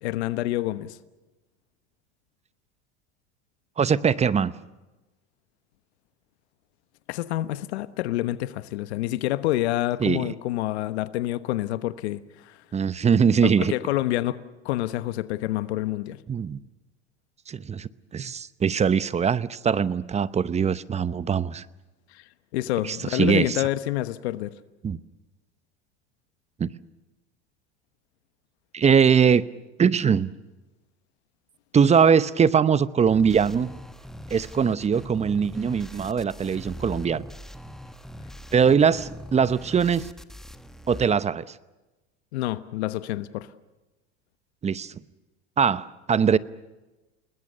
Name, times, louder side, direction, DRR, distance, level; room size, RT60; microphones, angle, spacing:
voice 1, 0.0-1.0 7.1-12.6 13.4-14.4 14.6-16.2 22.1-22.2 22.5-24.5 42.3-43.5, left 15 dB, 80° left, 1.2 m, -28 dB
voice 2, 3.8-4.5 10.0-10.3 12.7-13.7 16.3-16.6 17.5-21.6 22.8-23.6 24.8-25.0 26.6-26.7 28.7-29.4 29.8-30.3 31.7-33.7 34.3-37.2 38.5-40.1 40.9-41.4 44.6-44.9 45.6-46.4, right 7 dB, 20° right, 0.8 m, -21 dB
sound 1, 33.0-41.0, equal, ahead, 1.3 m, -41 dB
29.5 x 20.0 x 6.7 m
supercardioid pair, 105°, 32 cm